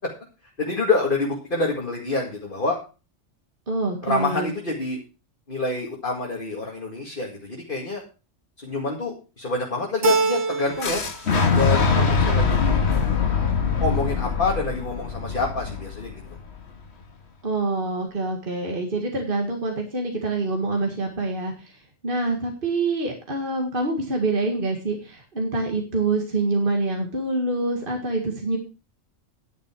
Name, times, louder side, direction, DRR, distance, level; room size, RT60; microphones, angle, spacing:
voice 1, 0.6-2.8 4.0-5.0 5.5-8.0 8.6-11.0 11.6-12.8 13.8-16.1, left 3 dB, 40° left, -1 dB, 2.2 m, -27 dB
voice 2, 3.7-4.5 17.4-21.5 22.0-28.6, right 2 dB, 45° right, 2 dB, 2.1 m, -26 dB
Keyboard (musical), 10.0-11.1 11.4-12.2, right 4 dB, 80° right, 1.7 m, -25 dB
Boom, 10.8-16.7, left 5 dB, 60° left, 1.8 m, -23 dB
11.0 x 9.7 x 4.5 m, 0.33 s
omnidirectional pair, 1.3 m